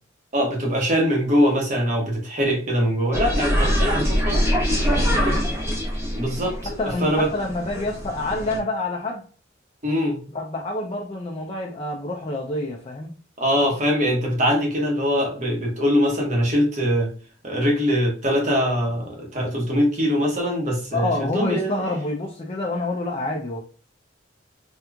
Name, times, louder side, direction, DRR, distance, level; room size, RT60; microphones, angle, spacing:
voice 1, 0.3-4.4 6.1-6.7 7.0-7.3 9.8-10.2 13.4-17.1 17.4-21.7, equal, 40° right, 0 dB, 1.1 m, -22 dB
sound 1, 3.1-8.6, equal, 15° right, 0.8 m, -23 dB
voice 2, 5.1-5.5 6.6-9.3 10.3-13.2 20.9-23.6, left 2 dB, 30° left, 0 dB, 0.4 m, -28 dB
3.4 x 2.9 x 2.3 m, 0.41 s
head